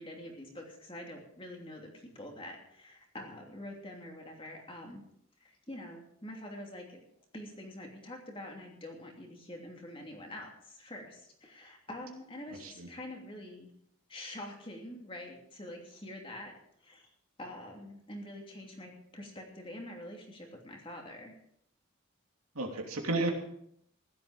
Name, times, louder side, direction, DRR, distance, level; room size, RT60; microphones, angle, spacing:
voice 1, 0.0-5.0 5.4-7.0 7.3-13.7 14.1-17.1 17.4-21.4, left 1 dB, 25° left, 1 dB, 2.9 m, -46 dB
voice 2, 22.5-23.3, right 2 dB, 85° right, 2 dB, 2.8 m, -32 dB
15.5 x 12.0 x 5.1 m, 0.71 s
head